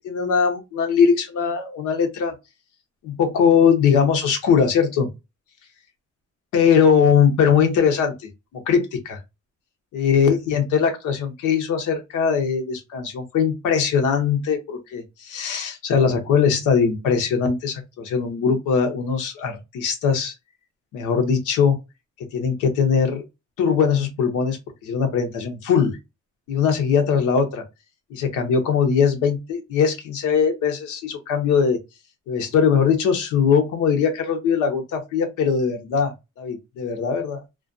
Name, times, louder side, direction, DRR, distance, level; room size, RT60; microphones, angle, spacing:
voice 1, 0.0-2.3 3.0-5.1 6.5-8.1 8.5-9.2 9.9-20.3 20.9-21.8 22.3-23.2 23.6-24.6 24.8-26.0 26.5-27.6 28.1-31.8 32.3-37.4, left 6 dB, 90° left, 0.8 m, -20 dB
2.4 x 2.2 x 2.5 m
cardioid pair, 90°, 30 cm